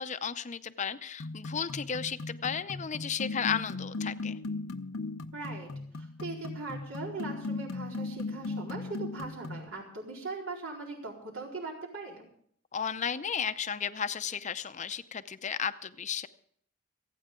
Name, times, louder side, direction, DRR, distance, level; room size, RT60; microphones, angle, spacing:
voice 1, 0.0-4.4 12.7-16.3, left 7 dB, 35° left, 12 dB, 0.6 m, -34 dB
sound 1, 1.2-9.7, left 3 dB, 80° left, 0.8 m, -38 dB
voice 2, 5.3-12.3, right 3 dB, 80° right, -2 dB, 4.3 m, -40 dB
27.5 x 9.3 x 3.7 m, 0.62 s
head